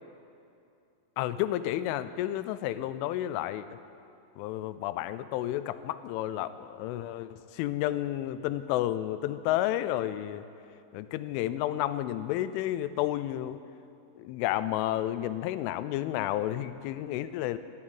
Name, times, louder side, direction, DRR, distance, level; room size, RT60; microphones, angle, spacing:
voice 1, 1.2-3.8 4.4-10.4 10.9-13.6 14.2-17.6, left 13 dB, 85° left, 13 dB, 3.0 m, -31 dB
14.0 x 7.3 x 9.8 m, 2.5 s
omnidirectional pair, 5.5 m